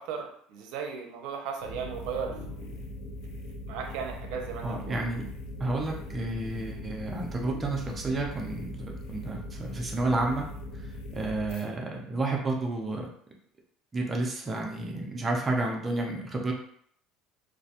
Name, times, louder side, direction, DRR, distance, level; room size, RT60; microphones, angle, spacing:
voice 1, 0.0-2.7 3.3-3.4 3.7-5.0, right 6 dB, 65° right, 3 dB, 0.5 m, -36 dB
sound 1, 1.6-11.6, left 1 dB, 80° left, 0.4 m, -40 dB
voice 2, 4.6-5.3 5.6-10.5 11.1-13.1 13.9-16.5, right 2 dB, 20° right, 0 dB, 0.4 m, -31 dB
2.4 x 2.2 x 2.7 m, 0.65 s
cardioid pair, 165°, 0 cm